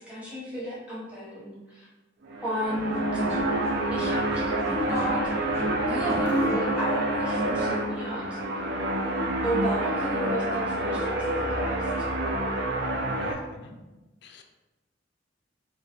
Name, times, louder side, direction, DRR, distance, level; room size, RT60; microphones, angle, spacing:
voice 1, 0.0-1.9 2.4-3.2 3.9-5.2 5.8-8.4 9.4-12.1, equal, 5° right, -8 dB, 1.0 m, -33 dB
sound 1, 2.2-13.3, right 1 dB, 60° right, 0.5 m, -28 dB
sound 2, 2.6-8.7, right 2 dB, 35° right, 1.3 m, -37 dB
sound 3, 6.2-9.9 12.4-12.9, right 1 dB, 85° right, 0.9 m, -35 dB
voice 2, 13.2-13.8 14.2-14.4, left 3 dB, 65° left, 4 dB, 0.4 m, -45 dB
3.8 x 2.6 x 2.9 m, 1.1 s
head